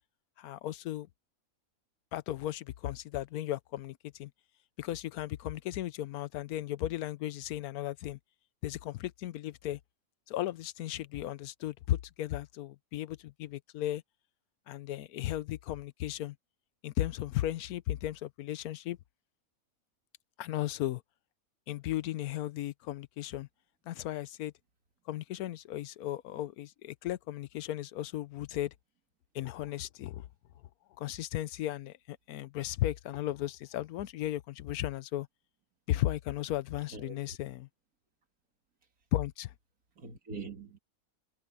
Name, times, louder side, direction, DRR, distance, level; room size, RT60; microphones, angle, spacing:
voice 1, 0.4-1.1 2.1-4.3 4.8-8.2 8.6-9.8 10.3-14.0 14.7-16.4 16.8-19.0 20.4-21.0 21.7-23.5 23.9-24.5 25.1-28.7 29.3-30.3 31.0-35.3 35.9-37.7 39.1-39.5, left 14 dB, 85° left, 1.1 m, -35 dB
voice 2, 36.9-37.4 40.0-40.8, right 4 dB, 80° right, 2.7 m, -43 dB
omnidirectional pair, 1.5 m